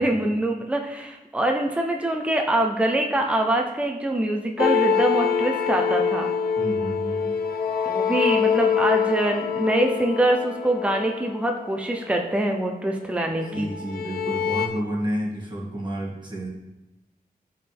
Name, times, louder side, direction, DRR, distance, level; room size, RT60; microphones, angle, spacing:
voice 1, 0.0-6.3 7.9-13.7, right 1 dB, 10° right, 2 dB, 0.7 m, -24 dB
sound 1, 4.6-12.3 13.3-14.7, left 7 dB, 85° left, 0.9 m, -25 dB
voice 2, 6.6-7.3 13.5-16.5, right 1 dB, 30° right, -3 dB, 2.2 m, -30 dB
14.5 x 5.5 x 3.5 m, 1.0 s
wide cardioid pair, 180°, 15 cm